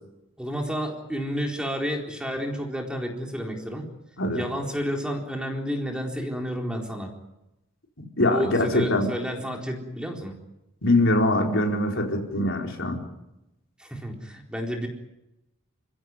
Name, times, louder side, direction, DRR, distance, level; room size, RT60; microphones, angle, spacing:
voice 1, 0.4-3.9 4.3-7.1 8.2-10.3 13.8-14.9, equal, 5° right, 0 dB, 4.1 m, -30 dB
voice 2, 8.2-9.1 10.8-13.0, left 1 dB, 60° left, 1 dB, 4.7 m, -23 dB
29.5 x 16.0 x 9.8 m, 0.92 s
head